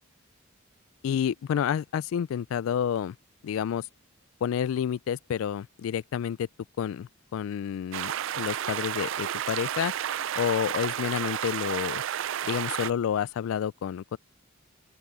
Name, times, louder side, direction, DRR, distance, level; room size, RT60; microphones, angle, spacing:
voice 1, 1.0-3.2 3.4-3.9 4.4-6.5 6.8-9.9 10.4-12.0 12.4-14.2, left 8 dB, 80° left, 0.3 m, -29 dB
sound 1, 7.9-12.9, right 10 dB, 65° right, 0.4 m, -31 dB
open air
head